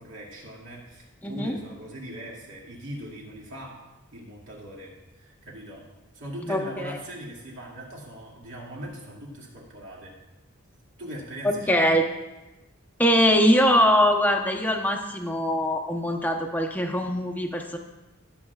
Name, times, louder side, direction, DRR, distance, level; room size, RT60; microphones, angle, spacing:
voice 1, 0.0-3.8 4.1-5.8 6.1-10.2 11.0-11.9, right 1 dB, 60° right, -3 dB, 2.3 m, -40 dB
voice 2, 1.2-1.6 6.5-7.0 11.7-12.0 13.0-17.8, equal, 10° left, 2 dB, 0.8 m, -22 dB
17.5 x 7.8 x 2.4 m, 1.1 s
head